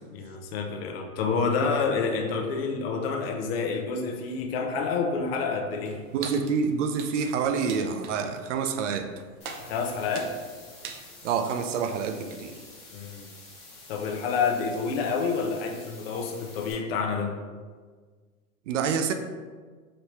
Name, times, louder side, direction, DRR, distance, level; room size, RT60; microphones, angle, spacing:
voice 1, 0.1-6.0 9.7-10.3 12.9-13.3 13.9-17.3, left 5 dB, 45° left, 3 dB, 0.6 m, -28 dB
sound 1, 5.9-11.1, right 5 dB, 90° right, 0.8 m, -44 dB
voice 2, 6.1-9.1 11.2-12.5 18.7-19.1, right 6 dB, 60° right, 7 dB, 0.5 m, -27 dB
sound 2, 9.4-16.7, left 2 dB, 15° left, 1.2 m, -49 dB
5.1 x 2.8 x 3.1 m, 1.5 s
hypercardioid pair, 145°, 42 cm